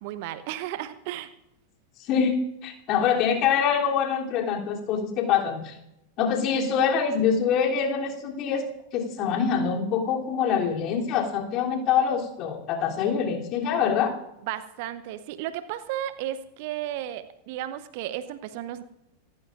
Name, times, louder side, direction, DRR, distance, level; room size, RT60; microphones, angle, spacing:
voice 1, 0.0-1.3 14.5-18.8, right 12 dB, 50° right, 13 dB, 0.9 m, -34 dB
voice 2, 2.1-5.8 6.2-8.6 8.9-14.1, left 7 dB, 35° left, -1 dB, 3.2 m, -25 dB
27.5 x 14.5 x 2.6 m, 0.84 s
figure-of-eight pair, 90°, 0 cm